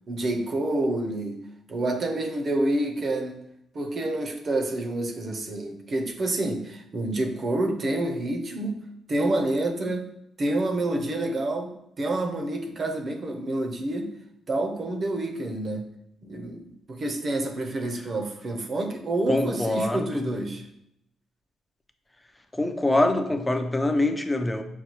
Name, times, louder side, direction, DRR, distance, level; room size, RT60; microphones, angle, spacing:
voice 1, 0.1-1.4 1.7-3.4 3.7-8.8 9.1-10.1 10.4-14.1 14.5-15.8 16.2-20.6, right 2 dB, 45° right, 0.6 m, -28 dB
voice 2, 19.3-20.3 22.5-24.6, left 2 dB, 15° left, 0.5 m, -24 dB
5.6 x 2.3 x 3.0 m
cardioid pair, 90°, 0 cm